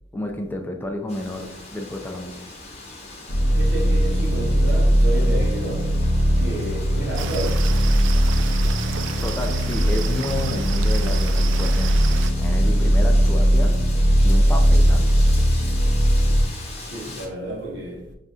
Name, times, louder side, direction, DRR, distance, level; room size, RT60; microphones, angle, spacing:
voice 1, 0.1-2.4 9.2-11.9 12.4-13.8 14.2-15.1, left 1 dB, 10° left, 0.3 m, -30 dB
Wind, 1.1-17.3, left 2 dB, 35° left, 0.8 m, -40 dB
sound 1, 3.3-16.4, equal, 85° left, 0.8 m, -19 dB
voice 2, 3.5-6.0 6.4-7.7 16.8-18.1, right 1 dB, 65° right, 0.8 m, -31 dB
sound 2, 7.1-12.3, right 8 dB, 80° right, 0.3 m, -33 dB
5.4 x 2.4 x 2.5 m
head